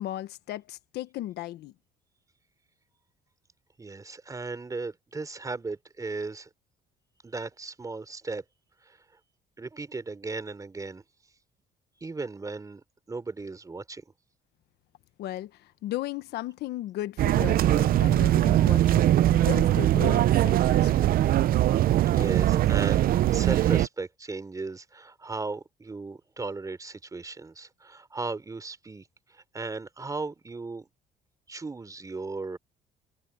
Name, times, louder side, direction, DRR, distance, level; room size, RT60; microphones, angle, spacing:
voice 1, 0.0-1.7 15.2-21.1 22.2-22.3, left 14 dB, 75° left, 1.2 m, -36 dB
voice 2, 3.8-6.5 7.2-8.4 8.8-9.0 9.6-11.0 12.0-12.8 13.1-14.0 22.1-30.9 31.5-32.6, right 3 dB, 20° right, 3.5 m, -36 dB
sound 1, 17.2-23.9, right 13 dB, 60° right, 0.6 m, -21 dB
cardioid pair, 110°, 17 cm